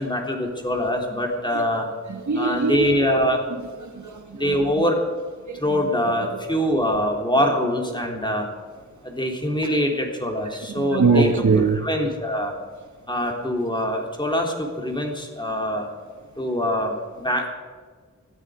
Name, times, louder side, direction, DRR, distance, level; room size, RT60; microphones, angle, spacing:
voice 1, 0.0-1.9 2.4-3.4 4.3-5.0 5.6-8.5 9.0-11.3 11.7-12.5 13.1-15.9 16.4-17.5, equal, 15° left, 3.5 m, -24 dB
voice 2, 2.1-3.1 3.8-4.8 5.5-5.8 9.6-9.7 10.7-11.8, right 4 dB, 80° right, 1.6 m, -23 dB
20.0 x 13.0 x 5.1 m
wide cardioid pair, 65°, 29 cm